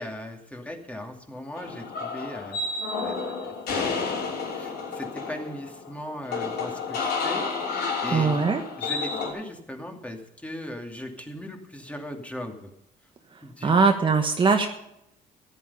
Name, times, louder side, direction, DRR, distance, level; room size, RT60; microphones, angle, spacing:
voice 1, 0.0-2.6 3.0-4.3 4.5-7.4 8.0-8.4 8.8-12.7 13.4-13.7, left 1 dB, 10° left, 3 dB, 2.6 m, -38 dB
sound 1, 1.6-9.3, left 4 dB, 75° left, 5.4 m, -30 dB
voice 2, 8.1-8.6 13.6-14.7, right 4 dB, 30° right, 5 dB, 1.3 m, -21 dB
14.0 x 11.0 x 5.5 m, 0.81 s
cardioid pair, 110°, 17 cm